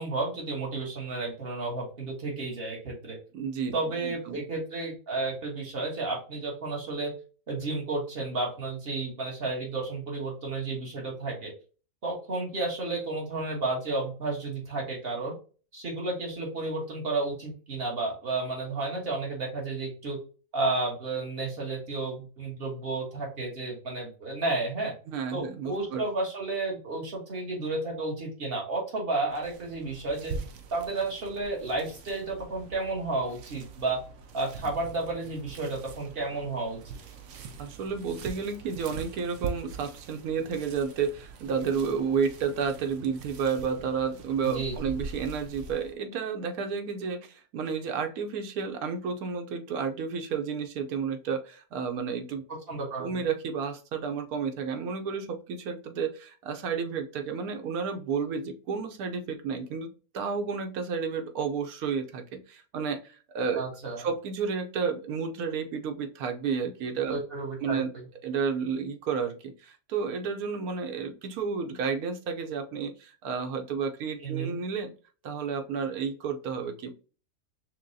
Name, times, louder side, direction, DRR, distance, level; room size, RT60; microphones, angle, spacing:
voice 1, 0.0-3.2 3.7-7.1 7.5-11.5 12.0-15.3 15.7-20.2 20.5-24.9 25.3-30.3 30.7-34.0 34.3-36.8 44.4-44.7 52.7-53.1 63.5-64.1 67.1-67.8 74.2-74.6, right 3 dB, 45° right, -1 dB, 1.4 m, -32 dB
voice 2, 3.3-4.4 25.1-26.0 37.6-52.4 53.0-63.6 64.0-67.2 67.6-67.9 68.2-74.9 75.2-76.9, right 6 dB, 85° right, 6 dB, 1.2 m, -31 dB
sound 1, 29.3-45.9, right 5 dB, 65° right, 0.9 m, -43 dB
5.9 x 2.2 x 2.7 m, 0.37 s
omnidirectional pair, 1.5 m